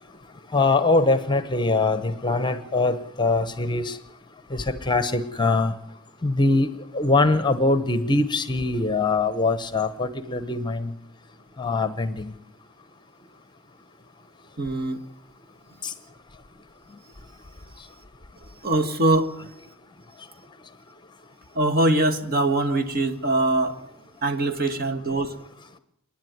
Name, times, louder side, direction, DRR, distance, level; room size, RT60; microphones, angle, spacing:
voice 1, 0.5-4.0 4.5-5.7 6.2-10.9 11.6-12.3 15.8-15.9, left 3 dB, 20° left, 13 dB, 0.9 m, -23 dB
voice 2, 14.6-15.0 18.6-19.3 21.5-23.8 24.2-25.4, right 2 dB, 45° right, 5 dB, 1.7 m, -22 dB
28.0 x 10.5 x 9.4 m, 0.76 s
head